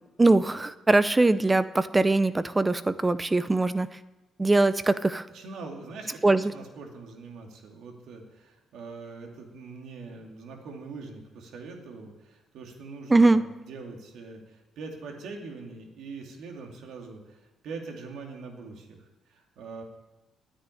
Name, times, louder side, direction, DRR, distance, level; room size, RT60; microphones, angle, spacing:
voice 1, 0.2-3.9 4.4-5.2 6.2-6.4 13.1-13.4, right 2 dB, 15° right, 14 dB, 0.7 m, -21 dB
voice 2, 5.3-19.0 19.3-19.8, right 4 dB, 80° right, 2 dB, 2.5 m, -43 dB
9.9 x 9.7 x 9.9 m, 1.1 s
cardioid pair, 90°, 0 cm